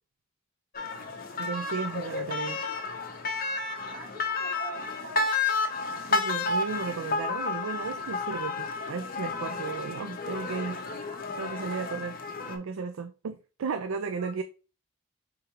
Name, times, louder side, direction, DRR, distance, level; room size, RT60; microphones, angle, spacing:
sound 1, 0.7-12.6, left 3 dB, 45° left, 0.7 m, -31 dB
voice 1, 1.4-2.6 6.1-10.8 11.3-12.2 12.5-14.4, right 5 dB, 80° right, 0.4 m, -34 dB
voice 2, 3.9-5.3 14.2-14.3, right 2 dB, 40° right, 1.0 m, -45 dB
4.9 x 3.7 x 2.9 m
head